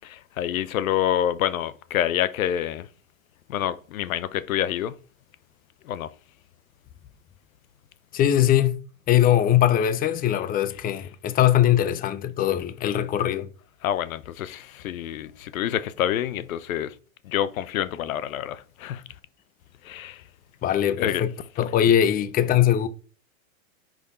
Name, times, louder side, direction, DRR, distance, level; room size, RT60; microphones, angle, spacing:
voice 1, 0.0-2.9 3.5-4.9 5.8-6.1 13.8-16.9 17.2-19.0 19.8-20.2 21.0-21.2, left 11 dB, 80° left, 0.8 m, -27 dB
voice 2, 8.1-8.8 9.1-13.5 20.6-21.3 21.6-22.9, left 11 dB, 20° left, 0.6 m, -21 dB
6.2 x 5.1 x 4.3 m
hypercardioid pair, 120°, 41 cm